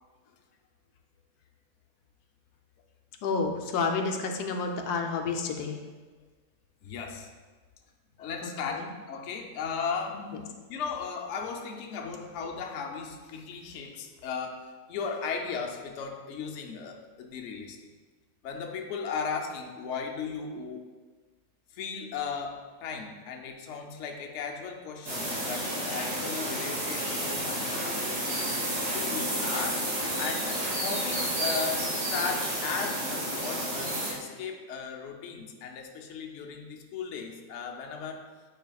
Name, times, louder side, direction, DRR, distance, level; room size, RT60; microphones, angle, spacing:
voice 1, 3.2-5.8 8.4-8.9, left 4 dB, 90° left, 4 dB, 1.2 m, -30 dB
voice 2, 6.8-7.3 8.2-17.8 18.4-20.9 21.7-28.2 28.9-29.9 30.2-38.3, left 5 dB, 60° left, 2 dB, 0.9 m, -36 dB
sound 1, 25.0-34.1, right 1 dB, 90° right, 2.4 m, -31 dB
9.0 x 4.8 x 2.3 m, 1.4 s
omnidirectional pair, 1.6 m